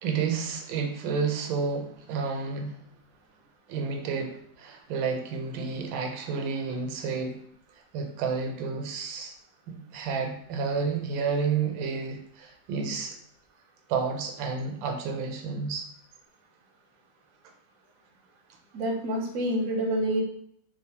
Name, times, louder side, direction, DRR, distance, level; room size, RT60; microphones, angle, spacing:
voice 1, 0.0-2.8 3.7-7.4 7.9-9.3 9.7-13.1 13.9-15.8, right 5 dB, 85° right, 3 dB, 1.3 m, -30 dB
voice 2, 18.7-20.2, right 1 dB, 70° right, 1 dB, 0.8 m, -27 dB
3.3 x 2.0 x 2.7 m, 0.66 s
omnidirectional pair, 2.1 m